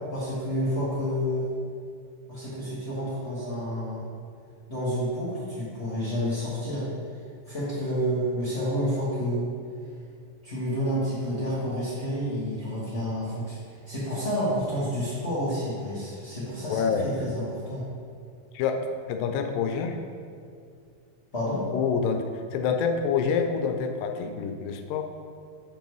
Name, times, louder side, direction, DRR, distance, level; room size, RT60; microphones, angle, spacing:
voice 1, 0.1-1.5 2.3-4.0 4.7-6.9 7.4-9.5 10.4-13.6 13.9-17.8 21.3-21.6, equal, 65° left, -11 dB, 0.6 m, -29 dB
voice 2, 16.7-17.2 18.5-20.0 21.7-25.0, left 6 dB, 90° left, 5 dB, 2.3 m, -27 dB
9.2 x 3.1 x 5.3 m, 2.3 s
omnidirectional pair, 3.9 m